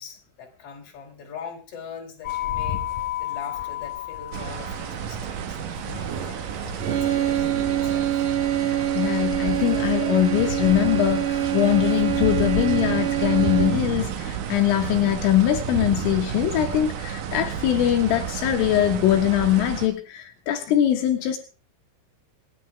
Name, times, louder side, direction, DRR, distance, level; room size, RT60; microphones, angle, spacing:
voice 1, 0.0-2.8 3.2-6.5 6.9-8.3, left 6 dB, 30° left, 1 dB, 4.3 m, -42 dB
sound 1, 2.2-12.8, left 8 dB, 60° left, 2.4 m, -34 dB
sound 2, 4.3-19.9, right 8 dB, 65° right, 2.1 m, -31 dB
sound 3, 6.8-14.0, right 11 dB, 85° right, 5.3 m, -25 dB
voice 2, 9.0-21.4, left 12 dB, 75° left, 4 dB, 3.8 m, -22 dB
27.0 x 10.0 x 3.4 m, 0.33 s
omnidirectional pair, 5.9 m